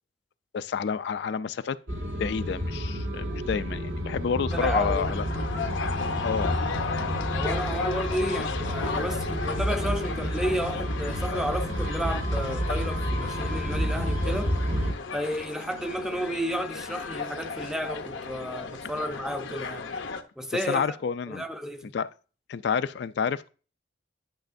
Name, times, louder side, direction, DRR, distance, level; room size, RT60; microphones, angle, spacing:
voice 1, 0.5-1.8 2.2-5.2 6.2-6.6 20.5-21.4 21.9-22.1 22.5-23.5, left 6 dB, 60° left, 0.3 m, -29 dB
sound 1, 1.9-14.9, equal, 70° right, 1.9 m, -30 dB
sound 2, 4.5-20.2, left 4 dB, 85° left, 0.8 m, -35 dB
voice 2, 4.5-5.2 7.3-14.5 15.1-19.9 20.4-20.9 21.3-21.9, equal, 5° right, 0.6 m, -32 dB
10.5 x 6.1 x 2.6 m
head